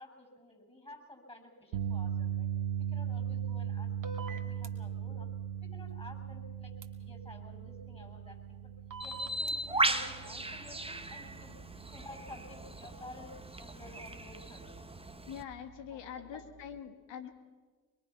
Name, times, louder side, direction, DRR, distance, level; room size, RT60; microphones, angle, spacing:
voice 1, 0.0-2.5 2.9-5.3 5.6-6.7 7.0-8.7 9.0-11.6 11.9-13.3 13.6-14.7 15.9-16.5, left 2 dB, 15° left, 5 dB, 7.7 m, -52 dB
sound 1, 1.7-14.0 14.3-14.6 16.8-16.9, right 9 dB, 80° right, 1.2 m, -39 dB
sound 2, 4.0-4.7 6.8-6.9 8.9-9.5, right 4 dB, 45° right, 2.5 m, -43 dB
Bird, 9.0-15.4, right 2 dB, 15° right, 1.8 m, -37 dB
voice 2, 15.3-17.3, left 9 dB, 75° left, 7 dB, 1.9 m, -44 dB
24.0 x 22.5 x 5.9 m, 1.4 s
hypercardioid pair, 40°, 44 cm